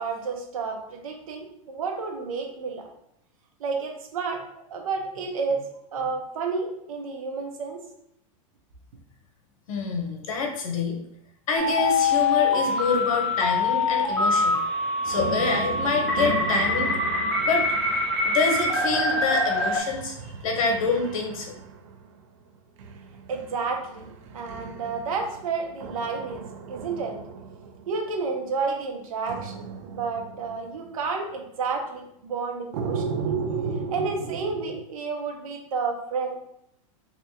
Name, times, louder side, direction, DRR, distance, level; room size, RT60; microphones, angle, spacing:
voice 1, 0.0-2.9 3.6-5.6 5.9-7.8 23.3-24.1 24.3-27.2 27.9-33.3 33.9-36.4, right 4 dB, 85° right, 2 dB, 0.9 m, -31 dB
voice 2, 9.7-11.0 11.5-14.6 15.0-16.9 17.4-17.6 18.2-20.1 20.4-21.5, left 4 dB, 80° left, 2 dB, 1.0 m, -26 dB
sound 1, 11.6-19.8, left 3 dB, 5° left, 0.6 m, -24 dB
sound 2, 15.1-22.2 22.8-28.4 29.3-30.9 32.7-34.8, right 5 dB, 65° right, 0.5 m, -35 dB
3.3 x 3.0 x 2.8 m, 0.77 s
supercardioid pair, 160°, 17 cm